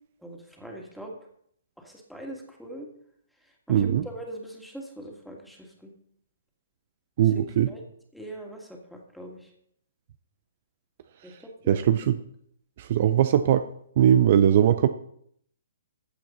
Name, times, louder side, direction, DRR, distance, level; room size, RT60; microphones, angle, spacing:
voice 1, 0.2-1.1 1.8-2.9 3.7-5.9 7.3-7.8 8.1-9.5 11.2-11.3 11.6-11.8, right 1 dB, ahead, 0 dB, 2.5 m, -42 dB
voice 2, 3.7-4.0 7.2-7.7 11.7-12.2 12.8-13.7 14.0-14.9, right 10 dB, 45° right, 11 dB, 0.6 m, -20 dB
15.0 x 8.4 x 4.1 m, 0.68 s
figure-of-eight pair, 125°, 0 cm